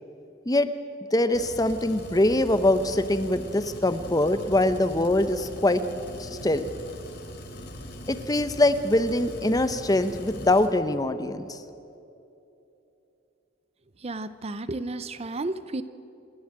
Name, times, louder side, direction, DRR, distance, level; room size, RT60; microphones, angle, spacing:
voice 1, 1.1-5.8 6.2-6.7 8.1-11.6, left 1 dB, 20° left, 11 dB, 0.8 m, -23 dB
sound 1, 1.3-10.7, left 1 dB, 60° left, 3.1 m, -41 dB
voice 2, 14.0-15.8, right 2 dB, 30° right, 13 dB, 0.6 m, -32 dB
28.0 x 11.0 x 8.9 m, 2.8 s
head